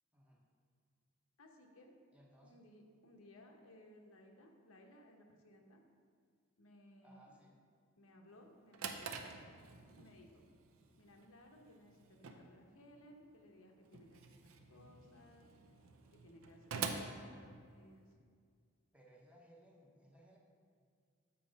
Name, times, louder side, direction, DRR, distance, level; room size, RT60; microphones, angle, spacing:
voice 1, 0.1-0.4 2.1-2.6 7.0-7.6 17.3-17.5 18.9-20.4, right 1 dB, 5° right, -1 dB, 0.7 m, -63 dB
voice 2, 1.4-1.9 2.4-5.8 6.6-7.3 8.0-9.3 10.0-10.4 11.0-15.5 16.1-18.1, left 1 dB, 85° left, 2 dB, 0.8 m, -61 dB
Drawer open or close, 8.4-18.1, right 5 dB, 80° right, 0.5 m, -48 dB
7.0 x 4.3 x 5.1 m, 2.1 s
head